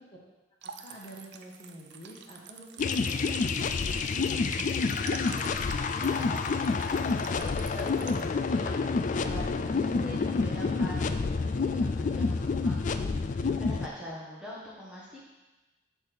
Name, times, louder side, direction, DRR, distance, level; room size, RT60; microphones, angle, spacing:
voice 1, 0.6-5.6, equal, 25° left, -4 dB, 1.6 m, -47 dB
sound 1, 0.6-8.2, right 6 dB, 65° right, 0.5 m, -46 dB
sound 2, 2.8-13.9, left 4 dB, 45° left, 0.3 m, -28 dB
voice 2, 5.8-15.3, equal, 5° right, -7 dB, 1.3 m, -44 dB
8.4 x 3.5 x 6.2 m, 1.1 s
head